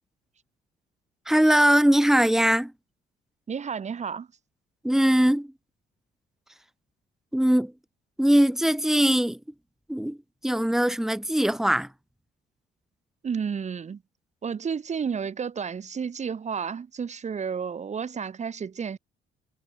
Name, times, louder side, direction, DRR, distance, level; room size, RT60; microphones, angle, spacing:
voice 1, 1.3-2.7 4.8-5.5 7.3-7.7 8.2-9.4 9.9-10.2 10.4-11.9, equal, ahead, 0.9 m, -21 dB
voice 2, 3.5-4.3 13.2-14.0 14.4-19.0, right 6 dB, 35° right, 0.9 m, -31 dB
cardioid pair, 90°, 20 cm